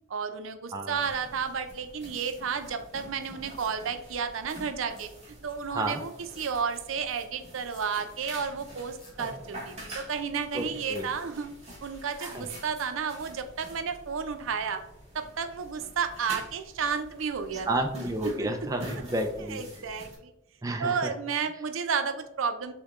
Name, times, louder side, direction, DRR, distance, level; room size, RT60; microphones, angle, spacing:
voice 1, 0.1-5.1 5.4-6.1 6.4-11.5 11.8-14.8 15.1-17.9 18.2-18.5 19.5-20.3 20.8-22.7, right 6 dB, 80° right, 8 dB, 0.5 m, -32 dB
sound 1, 0.9-20.2, right 1 dB, 30° right, 1.2 m, -46 dB
sound 2, 2.1-2.4 3.6-3.7 5.0-5.1 6.3-6.5 7.7-7.8 9.0-9.1, left 3 dB, 25° left, 0.8 m, -53 dB
voice 2, 5.7-6.0 10.5-11.1 12.2-12.5 17.7-19.6 20.6-21.1, right 1 dB, 15° right, 4 dB, 0.3 m, -31 dB
6.4 x 2.2 x 3.5 m, 0.83 s
head